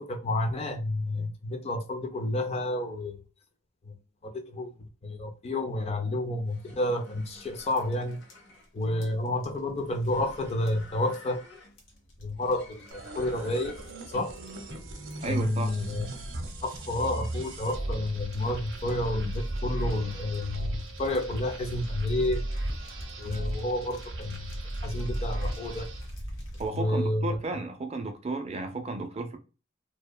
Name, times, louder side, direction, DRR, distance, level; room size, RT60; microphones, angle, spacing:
voice 1, 0.0-3.2 3.8-4.0 4.2-8.2 8.7-11.4 12.2-13.8 14.1-14.4 15.2-16.1 16.6-22.4 23.2-25.9 26.7-27.4, left 1 dB, 30° left, 0.4 m, -30 dB
sound 1, 6.3-14.1, left 2 dB, 60° left, 0.7 m, -52 dB
sound 2, 7.2-26.8, equal, 85° left, 1.1 m, -45 dB
sound 3, 12.9-26.1, right 1 dB, 70° right, 0.7 m, -36 dB
voice 2, 15.2-15.7 26.6-29.4, right 3 dB, 30° right, 0.4 m, -33 dB
2.8 x 2.1 x 2.2 m
head